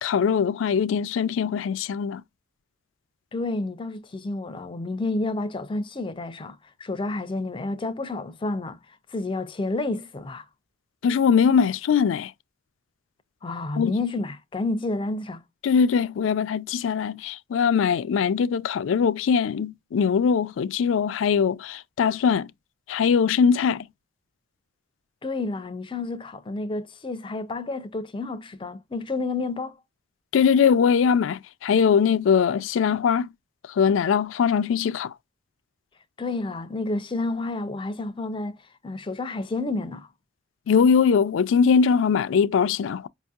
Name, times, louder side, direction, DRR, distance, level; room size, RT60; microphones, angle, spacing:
voice 1, 0.0-2.2 11.0-12.3 13.8-13.9 15.6-22.5 22.9-23.9 30.3-33.3 33.8-35.1 40.7-43.1, left 6 dB, 85° left, 0.3 m, -21 dB
voice 2, 3.3-8.8 9.1-10.4 13.4-15.4 25.2-29.8 36.2-40.1, left 2 dB, 25° left, 0.5 m, -30 dB
5.1 x 2.6 x 2.3 m
head